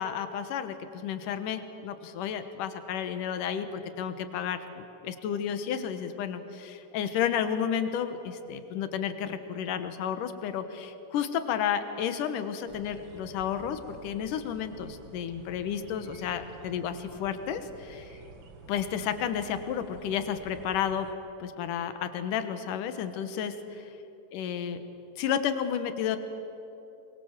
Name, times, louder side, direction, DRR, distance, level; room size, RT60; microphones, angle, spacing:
voice 1, 0.0-18.2 18.7-21.1 21.4-23.9 24.3-24.8 25.2-26.2, left 8 dB, 65° left, 9 dB, 2.5 m, -32 dB
sound 1, 12.7-21.1, right 3 dB, 65° right, 1.2 m, -50 dB
23.5 x 22.5 x 7.4 m, 3.0 s
omnidirectional pair, 4.4 m